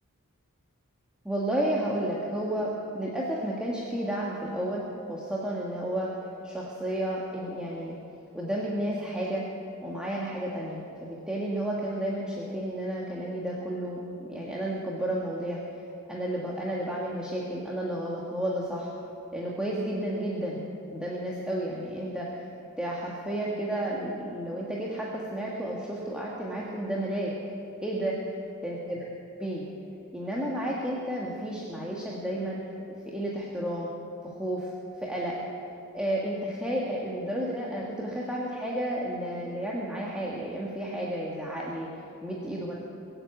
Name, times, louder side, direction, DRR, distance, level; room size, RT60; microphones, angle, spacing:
voice 1, 1.2-6.1 6.4-7.9 8.3-9.4 9.8-15.6 16.1-18.9 19.3-20.6 20.9-22.5 22.8-27.3 27.8-28.2 28.6-29.0 29.4-29.7 30.1-32.6 33.1-33.9 34.2-34.7 35.0-35.4 35.9-41.9 42.2-42.8, right 1 dB, 5° right, -5 dB, 1.5 m, -32 dB
21.5 x 8.0 x 8.3 m, 2.7 s
head